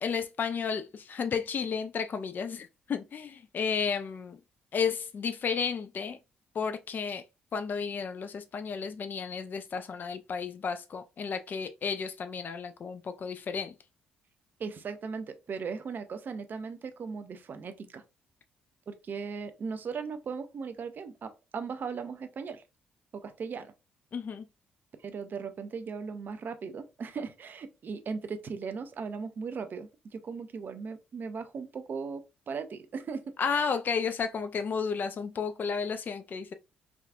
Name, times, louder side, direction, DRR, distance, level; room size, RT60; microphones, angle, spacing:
voice 1, 0.0-4.4 4.7-6.2 6.5-7.2 7.5-13.7 24.1-24.5 33.4-36.5, left 6 dB, 45° left, 0.4 m, -32 dB
voice 2, 14.6-18.0 18.9-22.6 23.1-23.7 25.0-33.7, right 5 dB, 45° right, 0.4 m, -38 dB
3.5 x 2.3 x 2.3 m
hypercardioid pair, 45°, 4 cm